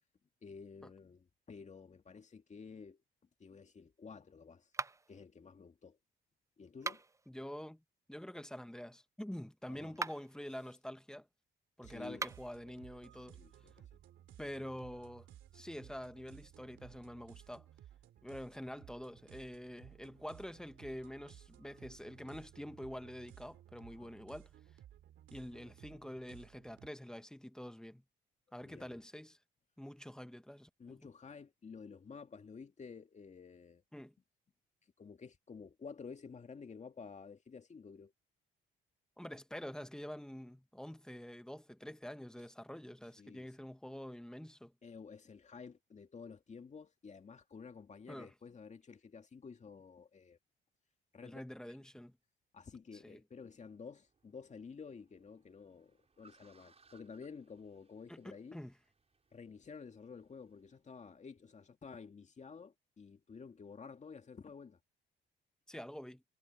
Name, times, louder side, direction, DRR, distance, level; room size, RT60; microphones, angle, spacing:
voice 1, 0.4-3.0 3.4-4.7 5.1-6.0 6.6-7.0 9.7-10.0 11.8-12.3 13.3-13.9 24.0-24.1 28.6-29.0 30.8-33.8 35.0-38.1 43.2-43.5 44.8-50.4 51.1-51.4 52.5-58.6 59.3-64.8, left 5 dB, 35° left, 2.2 m, -52 dB
sound 1, 4.7-5.2 6.7-7.3 9.9-10.4 12.1-12.6, right 3 dB, 15° right, 0.5 m, -41 dB
voice 2, 7.3-7.8 8.1-11.3 11.8-13.4 14.4-15.3 15.5-17.7 18.2-24.5 25.3-28.0 28.5-29.4 29.8-31.0 33.9-34.1 39.2-44.7 48.1-48.3 51.2-52.2 52.9-53.2 58.1-58.7 65.7-66.2, equal, 5° left, 1.3 m, -47 dB
sound 2, 11.8-26.9, right 11 dB, 75° right, 3.0 m, -58 dB
Car, 53.4-60.8, right 4 dB, 30° right, 7.2 m, -71 dB
cardioid pair, 90°, 20 cm